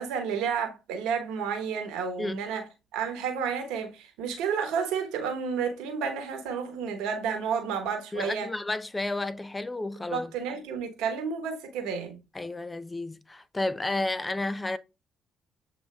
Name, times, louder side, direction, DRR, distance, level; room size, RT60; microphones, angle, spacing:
voice 1, 0.0-8.5 10.1-12.2, right 6 dB, 70° right, 1.0 m, -31 dB
voice 2, 8.1-10.3 12.3-14.8, left 2 dB, 20° left, 0.5 m, -31 dB
7.6 x 2.7 x 2.3 m
hypercardioid pair, 50°, 0 cm